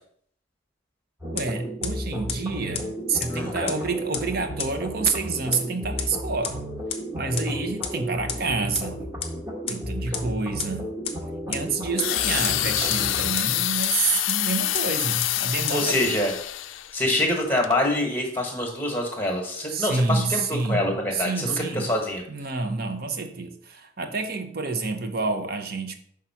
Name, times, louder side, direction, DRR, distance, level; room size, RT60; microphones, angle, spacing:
sound 1, 1.2-13.3, equal, 10° right, 1.2 m, -34 dB
voice 1, 1.2-6.6 7.1-9.1 9.7-11.0 11.5-16.0 19.7-21.9 22.3-25.9, right 4 dB, 50° right, 7 dB, 0.7 m, -28 dB
sound 2, 1.4-1.5 1.8-1.9 2.3-2.4 2.7-2.8 3.2-3.3 3.7-3.8 4.1-4.2 4.6-4.7 5.1-5.2 5.5-5.6 6.0-6.1 6.4-6.5 6.9-7.0 7.4-7.5 7.8-7.9 8.3-8.4 8.7-8.8 9.2-9.3 9.7-9.8 10.1-10.2 10.6-10.7 11.0-11.1 11.5-11.6 12.0-12.1 12.4-12.5 12.9-13.0 13.4-13.5 13.8-13.9 14.3-14.4 14.7-14.8 15.2-15.3 15.7-15.8, left 8 dB, 30° left, 0.6 m, -28 dB
voice 2, 3.3-3.7 15.7-16.3 16.9-22.2, left 1 dB, 10° left, 1 dB, 1.3 m, -25 dB
sound 3, 12.0-16.9 17.6-17.8, left 14 dB, 75° left, 0.4 m, -26 dB
5.5 x 3.6 x 5.7 m, 0.64 s
head